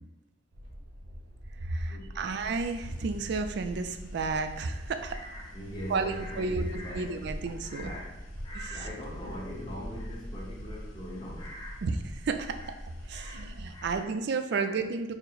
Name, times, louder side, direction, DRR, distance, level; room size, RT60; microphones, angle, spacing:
sound 1, 0.5-13.5, equal, 85° right, 0.7 m, -44 dB
voice 1, 1.6-5.2 5.9-6.7 6.9-7.9 8.5-8.9 11.8-12.8 13.0-15.1, right 4 dB, 60° right, 8 dB, 0.3 m, -32 dB
sound 2, 2.3-14.0, equal, 80° left, 0.6 m, -47 dB
voice 2, 5.1-7.1 7.6-8.1 8.4-11.8 12.4-12.7 13.1-14.0 14.5-14.7, equal, 25° left, -5 dB, 0.8 m, -42 dB
4.4 x 2.0 x 3.9 m, 1.1 s
head